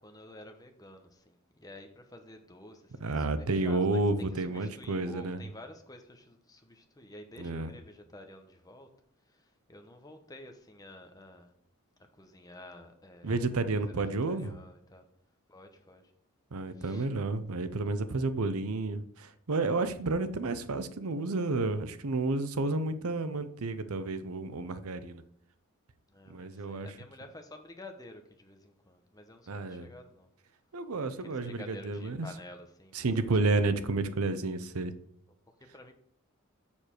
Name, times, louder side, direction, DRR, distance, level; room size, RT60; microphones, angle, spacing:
voice 1, 0.0-8.9 9.3-11.5 12.2-13.4 13.8-15.0 15.5-16.0 16.7-17.1 26.1-30.3 31.2-33.0 33.8-34.0 35.6-35.9, left 1 dB, 15° left, 0.9 m, -50 dB
voice 2, 3.0-5.4 7.4-7.7 13.2-14.5 16.5-25.2 26.3-26.9 29.5-29.9 30.7-32.3 32.9-34.9, right 3 dB, 75° right, 0.7 m, -31 dB
7.1 x 6.6 x 4.5 m
head